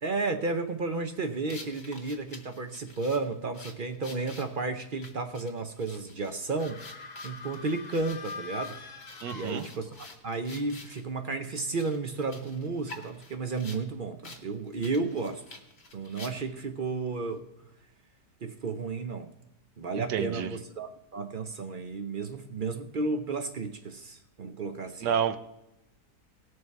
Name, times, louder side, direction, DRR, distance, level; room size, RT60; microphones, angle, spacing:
voice 1, 0.0-6.8 7.2-8.8 9.3-15.4 15.9-17.4 18.4-19.3 19.8-25.1, right 3 dB, 60° right, 8 dB, 0.5 m, -33 dB
sound 1, 1.5-11.0 11.5-13.8 14.2-14.4 14.7-16.6, left 3 dB, 85° left, 2.4 m, -49 dB
sound 2, 6.5-10.2, left 4 dB, 35° left, 0.8 m, -43 dB
voice 2, 9.2-9.6 19.9-20.5 25.0-25.4, right 8 dB, 85° right, 11 dB, 1.4 m, -29 dB
18.0 x 6.5 x 4.6 m, 0.91 s
omnidirectional pair, 1.8 m